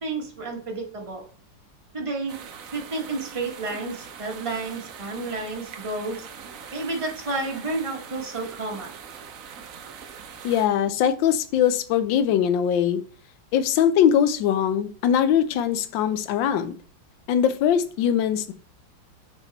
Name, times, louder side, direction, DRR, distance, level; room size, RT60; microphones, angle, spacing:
voice 1, 0.0-1.3 1.9-2.4 2.7-6.3 6.7-8.9, right 3 dB, 20° right, 0 dB, 0.9 m, -31 dB
sound 1, 2.3-10.7, right 7 dB, 75° right, 0.7 m, -42 dB
voice 2, 10.4-13.0 13.5-16.8 17.3-18.5, left 9 dB, 75° left, 11 dB, 1.2 m, -21 dB
5.7 x 4.2 x 4.0 m, 0.41 s
omnidirectional pair, 2.2 m